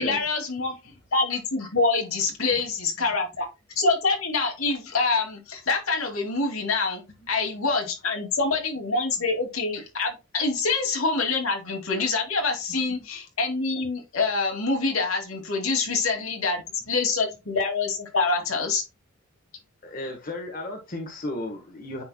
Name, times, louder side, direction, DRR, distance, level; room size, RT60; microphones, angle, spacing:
voice 1, 0.0-0.7 1.1-3.5 3.8-18.8, left 3 dB, 85° left, 2 dB, 2.3 m, -26 dB
voice 2, 19.8-22.0, left 1 dB, 40° left, 2 dB, 1.3 m, -34 dB
9.5 x 4.6 x 2.2 m, 0.25 s
head